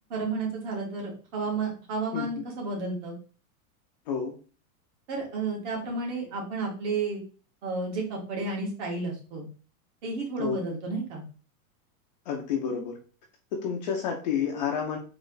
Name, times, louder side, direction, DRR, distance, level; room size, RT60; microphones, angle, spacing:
voice 1, 0.1-3.1 5.1-7.2 7.6-9.5 10.0-11.2, right 3 dB, 50° right, -1 dB, 2.0 m, -32 dB
voice 2, 12.3-13.0 13.5-15.0, left 7 dB, 30° left, 1 dB, 0.4 m, -29 dB
3.9 x 3.0 x 3.8 m, 0.38 s
supercardioid pair, 170°, 45 cm